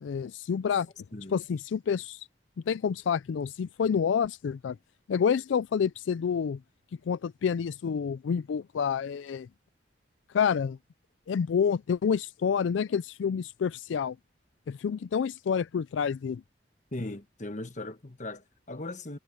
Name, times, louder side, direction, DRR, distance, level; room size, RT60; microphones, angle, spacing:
voice 1, 0.0-0.9 1.3-2.3 2.7-4.8 5.1-6.6 7.1-9.5 10.3-10.8 11.3-14.2 14.7-16.4, left 7 dB, 80° left, 0.4 m, -28 dB
voice 2, 16.9-19.2, left 2 dB, 40° left, 1.4 m, -38 dB
head